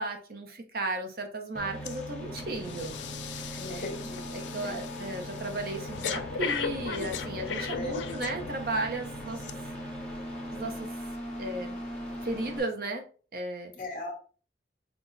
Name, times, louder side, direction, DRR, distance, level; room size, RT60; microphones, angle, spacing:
voice 1, 0.0-3.9 4.3-9.4 10.5-11.0 11.4-11.8 12.2-13.0 13.3-13.7, right 2 dB, 55° right, 3 dB, 0.8 m, -35 dB
sound 1, 1.5-12.6, equal, 5° left, 1.0 m, -39 dB
Breathing, 1.9-2.0 2.4-8.8 9.4-9.5, left 7 dB, 85° left, 0.4 m, -38 dB
voice 2, 3.5-5.0 7.7-8.1 13.7-14.1, left 2 dB, 45° left, 0 dB, 1.6 m, -39 dB
6.0 x 2.2 x 3.9 m, 0.39 s
head